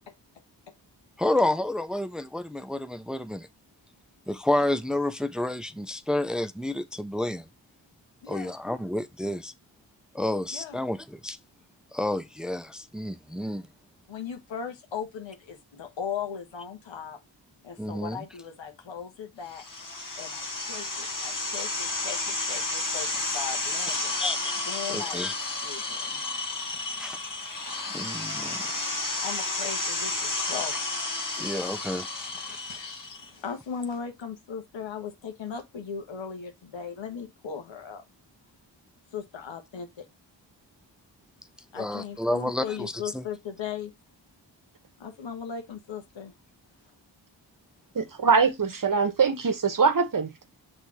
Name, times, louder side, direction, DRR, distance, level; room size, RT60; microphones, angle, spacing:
voice 1, 1.2-3.5 4.3-7.5 8.3-9.5 10.1-11.4 11.9-13.7 17.8-18.2 24.2-24.6 24.9-25.4 26.9-27.2 27.9-28.7 31.4-32.7 41.7-43.2, left 1 dB, ahead, 0.5 m, -30 dB
voice 2, 8.2-8.5 10.5-10.8 14.1-17.2 17.6-19.6 20.2-23.1 23.3-24.2 24.6-25.2 25.6-26.2 29.2-30.8 32.3-38.0 39.1-40.1 41.7-43.9 45.0-46.3, left 7 dB, 90° left, 1.4 m, -38 dB
sound 1, 19.5-33.3, left 2 dB, 45° left, 1.4 m, -32 dB
voice 3, 47.9-50.3, right 5 dB, 45° right, 1.1 m, -23 dB
6.3 x 3.5 x 4.3 m
cardioid pair, 60°, 44 cm